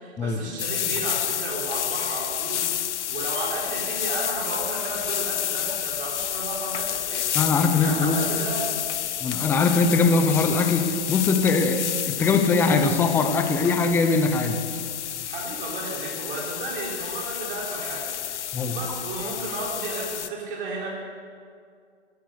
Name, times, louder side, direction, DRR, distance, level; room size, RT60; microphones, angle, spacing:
voice 1, 0.0-7.3 7.8-8.7 15.2-20.9, right 3 dB, 50° right, -4 dB, 3.5 m, -33 dB
sound 1, 0.6-20.3, left 11 dB, 80° left, 0.5 m, -30 dB
voice 2, 7.3-8.3 9.2-14.6 18.5-18.8, left 4 dB, 5° left, 7 dB, 0.4 m, -21 dB
sound 2, 8.2-10.2, equal, 15° right, 1.9 m, -46 dB
11.5 x 11.5 x 6.7 m, 2.2 s
hypercardioid pair, 135°, 34 cm